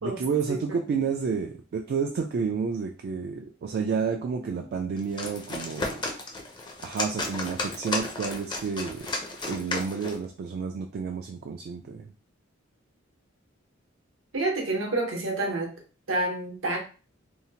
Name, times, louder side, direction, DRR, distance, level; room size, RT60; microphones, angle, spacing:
voice 1, 0.0-6.0 6.8-9.1 9.5-12.1, right 5 dB, 55° right, 3 dB, 0.3 m, -30 dB
sound 1, 5.0-10.3, left 2 dB, 25° left, 0.4 m, -33 dB
voice 2, 14.3-15.7 16.1-16.8, right 2 dB, 80° right, 1 dB, 0.8 m, -28 dB
2.7 x 2.0 x 2.8 m, 0.37 s
head